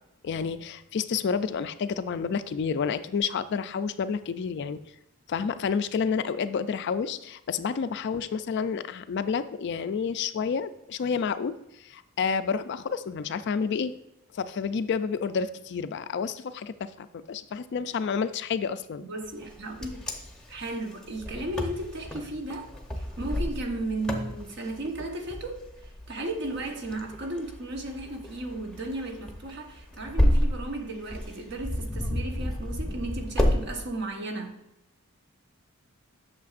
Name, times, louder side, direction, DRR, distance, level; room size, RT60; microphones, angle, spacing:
voice 1, 0.2-4.8 5.3-13.9 14.3-19.0, left 6 dB, 55° left, 0.3 m, -30 dB
voice 2, 19.0-20.0 20.5-34.6, right 2 dB, 50° right, 1.0 m, -35 dB
Wind, 19.4-33.6, left 1 dB, 5° left, 0.8 m, -31 dB
8.4 x 6.7 x 2.5 m
head